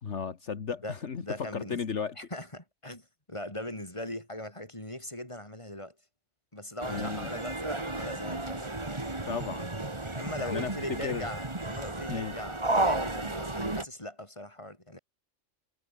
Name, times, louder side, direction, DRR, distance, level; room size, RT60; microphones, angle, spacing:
voice 1, 0.0-2.2 6.9-7.3 9.3-9.7 10.4-10.7 11.0-11.3 12.1-12.4, left 6 dB, 65° left, 1.7 m, -34 dB
voice 2, 0.8-1.8 2.2-5.9 6.5-8.7 10.1-15.0, left 1 dB, 25° left, 5.3 m, -40 dB
sound 1, 6.8-13.9, right 2 dB, 20° right, 2.1 m, -33 dB
omnidirectional pair, 1.3 m